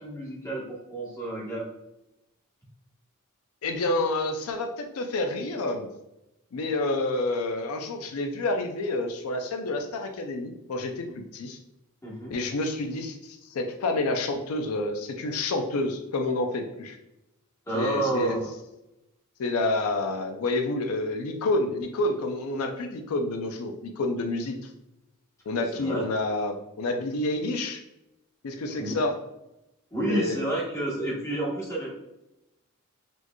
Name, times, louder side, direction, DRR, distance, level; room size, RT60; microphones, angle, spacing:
voice 1, 0.0-1.6 12.0-12.3 17.7-18.5 25.8-26.0 28.8-29.0 29.9-31.9, right 1 dB, 15° left, -6 dB, 1.2 m, -30 dB
voice 2, 3.6-5.9 6.5-11.6 12.3-17.0 17.7-18.4 19.4-24.6 25.5-27.8 28.4-29.1 30.1-30.4, left 2 dB, 85° left, 4 dB, 0.4 m, -29 dB
4.3 x 3.0 x 2.2 m, 0.92 s
head